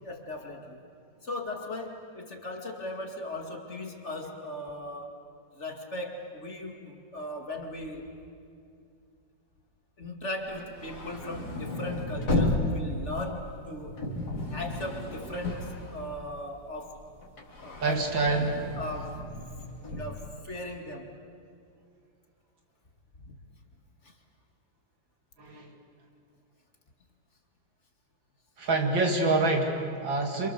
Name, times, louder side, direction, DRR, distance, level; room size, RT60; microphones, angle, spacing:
voice 1, 0.0-0.8 1.2-5.2 5.5-8.1 10.0-14.1 14.5-17.0 17.6-18.4 18.8-19.2 19.8-21.2 23.2-23.3 24.0-24.1, left 1 dB, 35° left, 2 dB, 2.5 m, -38 dB
sound 1, 10.5-16.6 16.9-20.2, left 2 dB, 55° left, 3.5 m, -33 dB
voice 2, 17.8-18.6 25.4-25.7 28.6-30.5, right 3 dB, 75° right, 2 dB, 3.2 m, -26 dB
27.5 x 27.5 x 6.9 m, 2.4 s
omnidirectional pair, 2.1 m